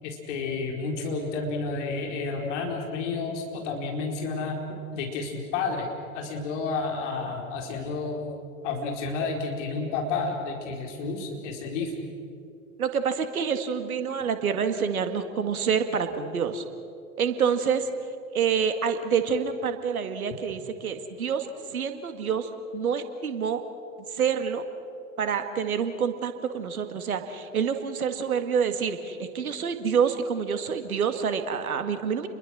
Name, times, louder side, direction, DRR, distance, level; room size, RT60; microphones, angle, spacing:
voice 1, 0.0-4.6 4.9-5.9 6.1-8.3 8.6-11.9, left 4 dB, 50° left, 1 dB, 4.5 m, -31 dB
voice 2, 12.8-16.6 17.2-17.9 18.3-23.6 24.1-24.6 25.2-32.3, right 6 dB, 70° right, 8 dB, 2.2 m, -27 dB
29.5 x 22.0 x 6.3 m, 2.6 s
figure-of-eight pair, 95°, 44 cm